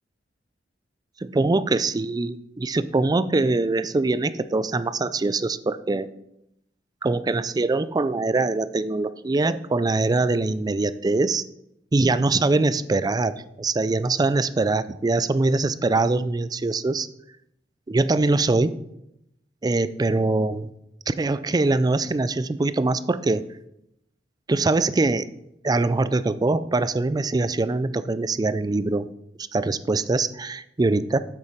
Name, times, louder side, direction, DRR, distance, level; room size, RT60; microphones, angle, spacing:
voice 1, 1.2-6.1 7.0-11.4 11.9-17.1 17.9-18.7 19.6-20.6 21.1-23.4 24.5-25.3 25.6-29.1 29.5-31.2, right 3 dB, 20° right, 15 dB, 0.4 m, -23 dB
8.4 x 7.0 x 5.1 m, 0.81 s
head